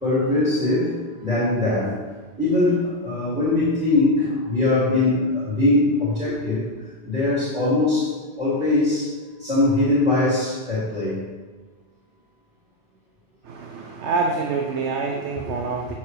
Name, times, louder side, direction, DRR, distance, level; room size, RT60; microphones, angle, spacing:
voice 1, 0.0-0.9 1.2-2.0 2.4-6.6 7.0-8.1 8.4-9.1 9.4-11.2, left 2 dB, 5° right, -11 dB, 2.5 m, -21 dB
voice 2, 13.4-15.9, right 4 dB, 85° right, 1 dB, 1.1 m, -26 dB
8.5 x 7.1 x 3.3 m, 1.3 s
omnidirectional pair, 1.1 m